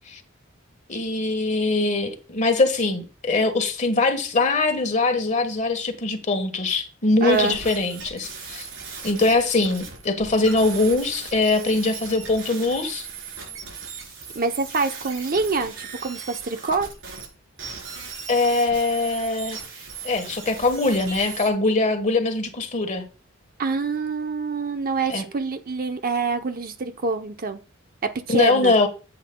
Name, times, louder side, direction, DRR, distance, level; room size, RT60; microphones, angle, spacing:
voice 1, 0.9-8.7 9.0-13.1 18.3-19.6 20.0-23.1 25.1-25.2 28.3-28.9, left 3 dB, 35° left, 1.4 m, -22 dB
voice 2, 7.2-7.6 14.3-16.9 23.6-27.6 28.0-28.7, right 4 dB, 45° right, 0.7 m, -26 dB
sound 1, 7.3-17.3 17.6-21.5, right 5 dB, 70° right, 4.1 m, -38 dB
12.0 x 8.1 x 2.3 m
head